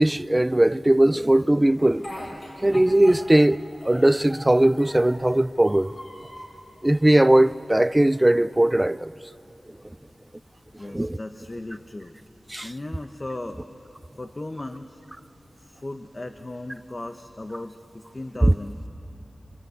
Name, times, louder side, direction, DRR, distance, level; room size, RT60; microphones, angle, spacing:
voice 1, 0.0-2.1 2.6-5.9 6.8-9.1 10.9-11.2 12.5-12.7 18.4-18.5, right 1 dB, 20° right, 0.5 m, -19 dB
Speech, 1.8-3.5 3.8-5.2 5.6-6.6 7.1-7.9, left 1 dB, 65° left, 5.4 m, -41 dB
voice 2, 10.8-12.1 12.6-13.6 14.2-15.0 15.6-18.9, left 2 dB, 40° left, 1.0 m, -36 dB
26.5 x 25.5 x 8.1 m
wide cardioid pair, 65°, 0 cm